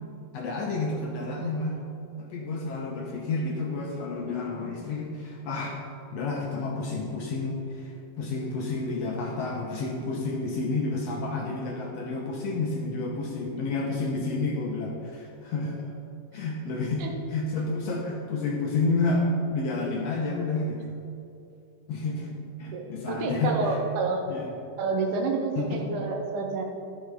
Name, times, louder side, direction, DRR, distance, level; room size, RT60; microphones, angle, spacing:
voice 1, 0.3-1.8 2.2-5.8 6.1-15.9 16.3-20.9 21.9-22.3 22.6-23.8 24.3-24.5 25.5-25.8, left 3 dB, 70° left, -1 dB, 1.7 m, -30 dB
voice 2, 22.7-24.3 24.8-26.6, right 4 dB, 75° right, 2 dB, 2.4 m, -29 dB
11.5 x 6.5 x 4.6 m, 2.7 s
omnidirectional pair, 3.6 m